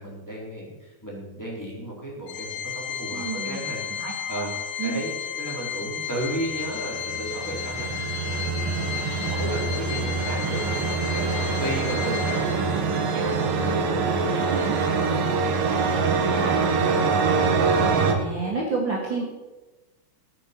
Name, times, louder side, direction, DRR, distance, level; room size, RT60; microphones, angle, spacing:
voice 1, 0.0-3.8 4.3-17.2, right 1 dB, 5° left, -4 dB, 4.1 m, -35 dB
Organ, 2.3-12.9, left 8 dB, 65° left, 2.0 m, -33 dB
voice 2, 3.1-3.6 4.0-4.5 4.8-5.0 14.5-14.6 18.1-19.2, right 4 dB, 40° right, -3 dB, 2.7 m, -29 dB
sound 1, 6.6-18.2, right 4 dB, 85° right, 3.2 m, -24 dB
18.5 x 9.0 x 5.5 m, 1.1 s
omnidirectional pair, 3.7 m